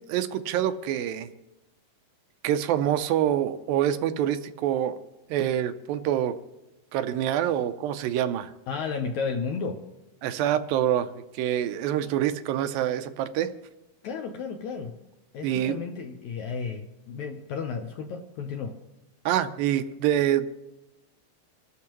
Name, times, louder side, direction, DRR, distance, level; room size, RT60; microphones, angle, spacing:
voice 1, 0.1-1.3 2.4-5.0 5.3-6.4 6.9-8.5 10.2-11.1 11.3-13.5 15.4-15.8 19.3-20.5, right 11 dB, 80° right, 10 dB, 2.4 m, -26 dB
voice 2, 8.7-9.8 14.0-15.0 15.3-18.8, left 5 dB, 70° left, 4 dB, 1.8 m, -33 dB
26.0 x 12.0 x 3.0 m, 0.98 s
omnidirectional pair, 4.1 m